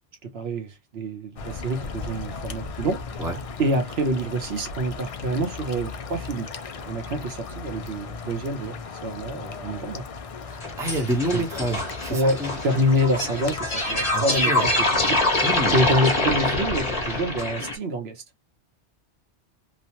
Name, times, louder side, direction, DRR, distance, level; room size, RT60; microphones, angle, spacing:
voice 1, 0.2-3.0 3.6-6.5 6.7-10.0 11.0-11.1 11.3-11.7 12.1-15.2 15.7-18.2, right 1 dB, 65° right, 0.9 m, -27 dB
sound 1, 1.4-16.0, left 5 dB, 70° left, 0.3 m, -37 dB
voice 2, 10.4-12.6 14.1-14.7 15.4-15.8, right 1 dB, 5° right, 0.7 m, -28 dB
sound 2, 10.6-17.8, left 2 dB, 35° left, 1.0 m, -25 dB
3.0 x 2.1 x 2.7 m
omnidirectional pair, 1.2 m